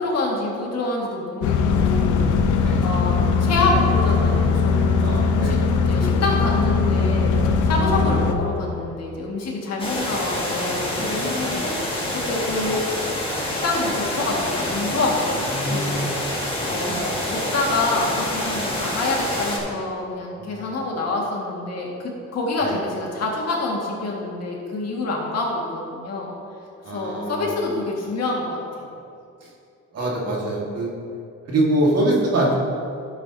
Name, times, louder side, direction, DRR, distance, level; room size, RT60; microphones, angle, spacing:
voice 1, 0.0-2.5 2.8-5.6 5.9-7.3 7.6-12.0 12.3-12.8 13.4-16.3 16.6-26.3 26.9-28.9, left 2 dB, 55° left, -2 dB, 1.9 m, -26 dB
sound 1, 1.4-8.4, left 5 dB, 80° left, 0.8 m, -20 dB
voice 2, 5.0-5.6 11.4-11.6 15.5-16.1 16.7-17.0 20.4-20.8 22.6-22.8 26.8-27.5 29.9-30.9 31.5-32.6, right 1 dB, 55° right, -2 dB, 1.9 m, -24 dB
sound 2, 9.8-19.6, left 1 dB, 15° left, 2.0 m, -27 dB
11.0 x 7.8 x 2.8 m, 2.5 s
cardioid pair, 90°, 30 cm